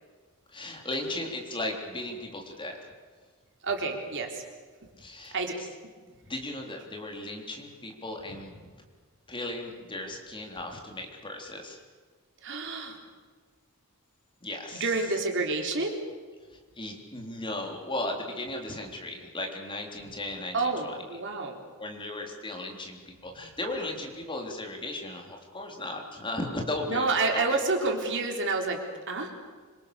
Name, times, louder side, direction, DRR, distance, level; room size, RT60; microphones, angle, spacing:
voice 1, 0.5-2.9 5.0-5.4 6.3-8.6 9.3-11.8 14.4-14.9 16.5-20.6 20.8-21.0 21.8-27.6, left 1 dB, 25° left, 2 dB, 3.8 m, -36 dB
voice 2, 3.6-4.4 5.3-5.7 12.4-13.0 14.7-16.0 20.5-21.6 26.9-29.5, right 3 dB, 60° right, 2 dB, 3.9 m, -29 dB
26.5 x 25.0 x 7.0 m, 1.5 s
head